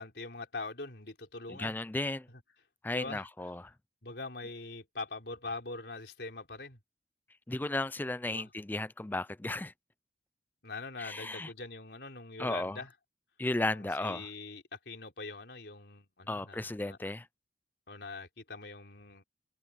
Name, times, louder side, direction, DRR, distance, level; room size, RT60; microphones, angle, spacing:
voice 1, 0.0-1.8 2.9-3.2 4.0-6.8 8.3-8.5 10.6-12.9 13.7-17.0 17.9-19.2, left 3 dB, 75° left, 3.8 m, -43 dB
voice 2, 1.5-2.3 2.8-3.7 7.5-9.7 11.0-11.5 12.4-12.8 13.4-14.3 16.3-17.3, left 2 dB, 10° left, 0.3 m, -34 dB
head